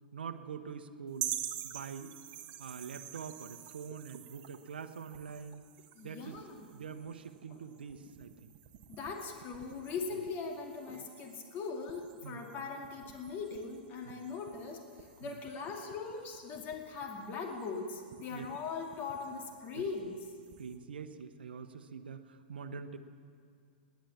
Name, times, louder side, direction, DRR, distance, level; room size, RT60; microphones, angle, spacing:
voice 1, 0.1-1.4 1.6-2.2 2.6-5.7 6.0-8.5 12.2-12.7 14.0-14.2 15.2-15.3 18.3-18.4 19.7-19.9 20.6-23.0, right 6 dB, 75° right, 8 dB, 0.9 m, -45 dB
sound 1, 1.1-20.8, right 11 dB, 45° right, 1.3 m, -48 dB
voice 2, 6.0-6.7 7.5-7.6 8.9-20.2, left 4 dB, 35° left, 2 dB, 2.4 m, -40 dB
19.0 x 10.5 x 7.2 m, 2.3 s
figure-of-eight pair, 105°, 5 cm